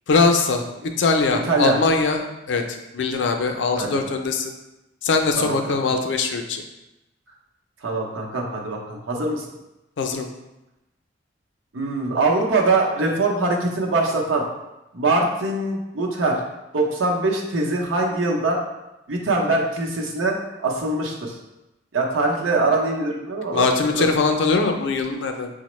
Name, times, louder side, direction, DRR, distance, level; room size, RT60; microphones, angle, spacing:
voice 1, 0.1-0.6 1.0-2.2 2.5-2.6 2.9-4.5 5.0-6.6 10.0-10.3 23.5-25.5, left 4 dB, 65° left, 5 dB, 0.4 m, -21 dB
voice 2, 1.5-1.8 3.8-4.0 5.4-5.6 7.8-9.5 11.7-14.4 14.9-16.4 16.7-18.6 19.1-21.3 21.9-23.7 24.0-24.1, right 2 dB, 85° right, -1 dB, 0.7 m, -23 dB
5.7 x 2.1 x 3.1 m, 0.97 s
head